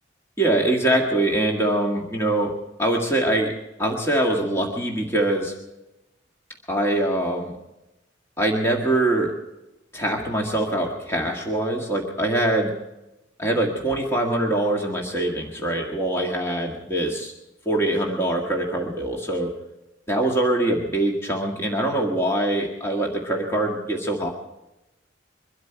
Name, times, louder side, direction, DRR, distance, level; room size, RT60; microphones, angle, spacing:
voice 1, 0.4-2.5 2.8-3.5 3.8-5.5 6.7-7.5 8.4-9.3 9.9-12.7 13.4-17.3 17.6-19.5 20.1-24.3, right 1 dB, 15° left, -1 dB, 1.8 m, -23 dB
23.5 x 12.5 x 4.6 m, 0.95 s
head